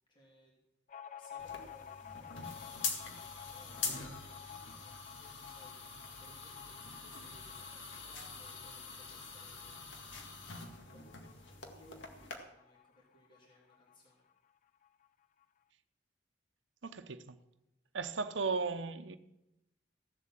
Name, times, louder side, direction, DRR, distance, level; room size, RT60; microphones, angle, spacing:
voice 1, 0.1-0.5 1.2-9.9 10.5-14.2, left 1 dB, 25° left, 2.8 m, -63 dB
sound 1, 0.9-14.0 14.3-14.4 14.7-15.4, left 9 dB, 45° left, 0.5 m, -53 dB
sound 2, 1.4-12.4, left 4 dB, 80° left, 1.9 m, -44 dB
voice 2, 16.8-17.4 17.9-19.2, right 4 dB, 80° right, 0.8 m, -36 dB
15.5 x 7.5 x 7.5 m
head